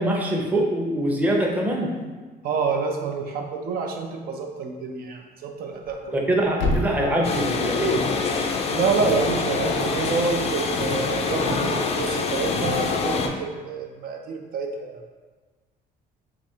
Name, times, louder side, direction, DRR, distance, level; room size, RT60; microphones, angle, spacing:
voice 1, 0.0-1.9 6.1-8.0, right 1 dB, 10° right, -1 dB, 0.6 m, -23 dB
voice 2, 2.4-6.2 8.7-15.0, right 4 dB, 60° right, 3 dB, 0.4 m, -28 dB
Thump thud, 5.7-9.8, left 2 dB, 85° left, 0.6 m, -33 dB
sound 1, 6.3-13.3, left 1 dB, 80° right, 0.9 m, -38 dB
sound 2, 7.2-13.3, left 4 dB, 40° left, 0.4 m, -25 dB
3.3 x 2.4 x 4.2 m, 1.3 s
cardioid pair, 110°, 17 cm